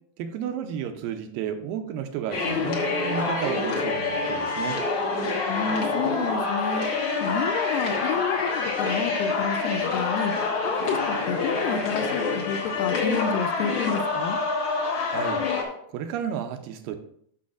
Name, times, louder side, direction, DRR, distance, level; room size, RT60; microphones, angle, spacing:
voice 1, 0.2-4.8 15.0-15.5 15.9-17.0, right 8 dB, 85° right, 7 dB, 2.3 m, -32 dB
sound 1, 2.3-15.6, left 4 dB, 55° left, 1.6 m, -26 dB
voice 2, 5.5-6.9 7.2-10.3 10.6-14.4, left 6 dB, 80° left, 8 dB, 2.1 m, -30 dB
12.5 x 6.1 x 2.5 m, 0.65 s
omnidirectional pair, 4.2 m